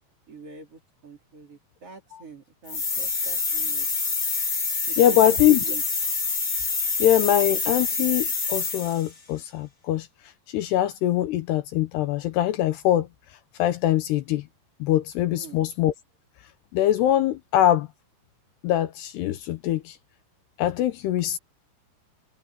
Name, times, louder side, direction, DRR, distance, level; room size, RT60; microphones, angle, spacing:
voice 1, 0.3-3.9 4.9-5.8 15.3-15.7, right 4 dB, 35° right, 4.4 m, -44 dB
sound 1, 2.7-9.1, left 4 dB, 30° left, 1.4 m, -27 dB
voice 2, 5.0-5.6 7.0-10.1 10.5-13.1 13.6-14.4 14.8-15.9 16.7-17.9 18.6-20.0 20.6-21.4, left 12 dB, 75° left, 2.8 m, -22 dB
omnidirectional pair, 5.2 m